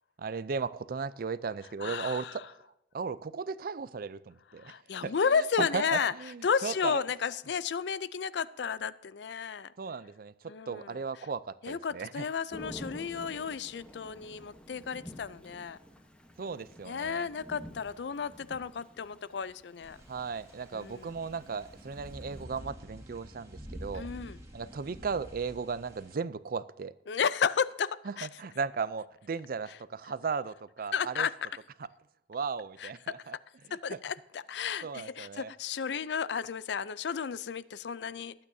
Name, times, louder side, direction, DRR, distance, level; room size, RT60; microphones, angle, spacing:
voice 1, 0.2-2.4 2.9-4.8 5.0-7.0 9.8-12.2 16.4-17.3 20.1-24.1 24.5-26.9 28.1-31.3 32.3-33.3 33.7-34.0 34.8-35.5, right 5 dB, 55° right, 17 dB, 0.5 m, -36 dB
voice 2, 1.8-2.4 4.6-6.1 6.4-9.7 10.5-11.0 11.6-15.8 16.8-20.0 20.7-21.1 23.9-24.4 27.1-28.3 30.9-31.5 32.8-32.9 33.7-38.3, left 6 dB, 75° left, 18 dB, 0.5 m, -33 dB
Thunder / Rain, 12.5-22.4, equal, 5° left, 1.1 m, -50 dB
sound 1, 19.8-26.1, equal, 20° right, 2.1 m, -48 dB
20.5 x 8.9 x 2.7 m, 0.90 s
head